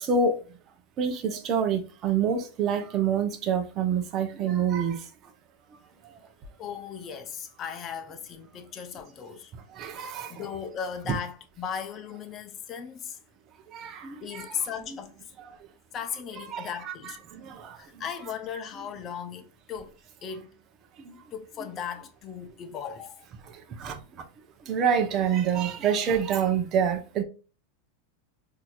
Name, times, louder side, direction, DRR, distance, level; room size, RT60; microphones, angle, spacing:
voice 1, 0.1-0.4 1.0-5.0 9.8-10.3 13.7-14.1 16.5-16.9 23.8-23.9 24.7-27.2, right 6 dB, 35° right, 0.8 m, -26 dB
voice 2, 6.6-9.5 10.0-13.2 14.2-15.1 15.9-17.2 17.8-19.9 20.2-20.5 21.3-23.3, left 7 dB, 30° left, 0.7 m, -37 dB
4.3 x 2.8 x 2.4 m
supercardioid pair, 130°, 0 cm